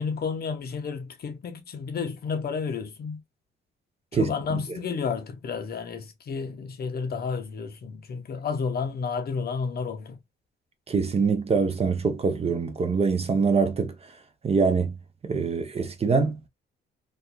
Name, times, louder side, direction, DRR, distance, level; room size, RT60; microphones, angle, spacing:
voice 1, 0.0-3.2 4.1-10.2, left 5 dB, 50° left, 0.7 m, -31 dB
voice 2, 4.1-4.6 10.9-14.2 14.4-15.0 15.2-16.5, right 5 dB, 30° right, 0.6 m, -24 dB
2.9 x 2.3 x 2.3 m
cardioid pair, 90°, 20 cm